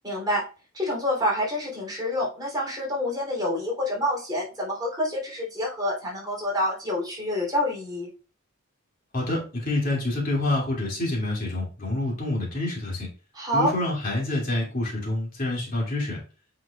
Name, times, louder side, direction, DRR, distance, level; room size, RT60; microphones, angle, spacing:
voice 1, 0.0-0.5 0.7-8.1 13.3-13.7, left 1 dB, 20° right, -3 dB, 3.3 m, -27 dB
voice 2, 9.1-13.1 13.5-16.2, left 2 dB, 45° left, -3 dB, 2.6 m, -27 dB
8.6 x 5.7 x 2.4 m, 0.34 s
head